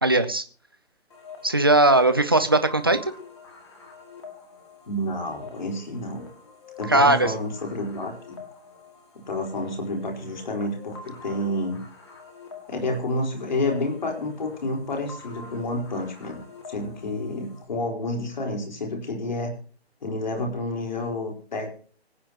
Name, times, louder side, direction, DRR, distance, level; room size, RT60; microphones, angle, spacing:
voice 1, 0.0-0.4 1.4-3.0 6.9-7.3, right 2 dB, 20° right, 9 dB, 0.6 m, -19 dB
sound 1, 1.1-17.6, left 4 dB, 25° left, 2.2 m, -46 dB
voice 2, 4.9-6.3 6.8-8.4 9.3-11.9 12.7-19.5 20.0-21.7, left 1 dB, 45° left, 1 dB, 4.2 m, -29 dB
25.0 x 8.7 x 2.9 m, 0.42 s
hypercardioid pair, 175°, 32 cm